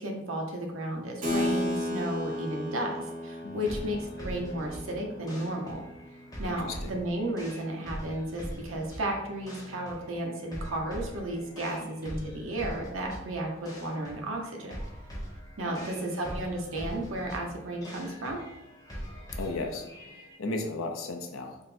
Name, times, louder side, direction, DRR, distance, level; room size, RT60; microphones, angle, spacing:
voice 1, 0.0-5.8 6.4-14.8 15.6-18.4, right 1 dB, 85° right, 1 dB, 0.8 m, -33 dB
Keyboard (musical), 1.2-7.2, left 1 dB, 40° right, 0.7 m, -35 dB
voice 2, 3.4-3.8 6.5-6.9 11.7-11.9 15.6-16.0 19.4-21.6, left 2 dB, 85° left, 4 dB, 0.6 m, -36 dB
sound 1, 3.6-20.3, equal, 20° left, 0.9 m, -42 dB
3.7 x 2.1 x 4.1 m, 0.92 s
head